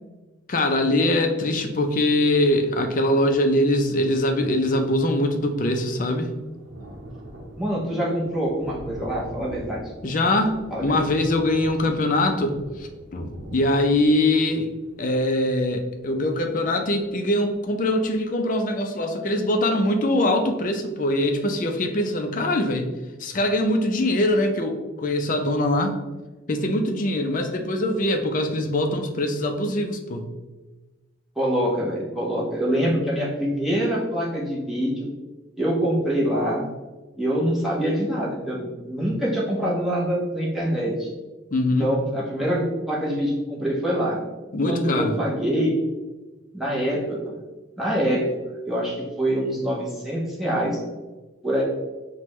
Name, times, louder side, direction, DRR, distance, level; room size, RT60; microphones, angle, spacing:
voice 1, 0.5-6.3 10.0-10.5 10.8-14.7 15.0-22.9 23.2-26.0 26.5-30.2 41.5-41.9 44.5-45.1, left 1 dB, 40° left, 4 dB, 0.4 m, -22 dB
Thunder, 4.2-4.3 4.5-17.2 17.6-17.7 18.1-18.2, right 1 dB, 70° right, 0.7 m, -43 dB
voice 2, 7.6-9.8 10.7-11.0 31.4-35.1 35.6-36.7 37.2-41.1 41.8-44.2 44.7-45.8 46.5-47.3 47.8-48.2 48.6-50.8 51.4-51.6, equal, ahead, -6 dB, 0.8 m, -25 dB
5.9 x 2.2 x 3.0 m, 1.2 s
head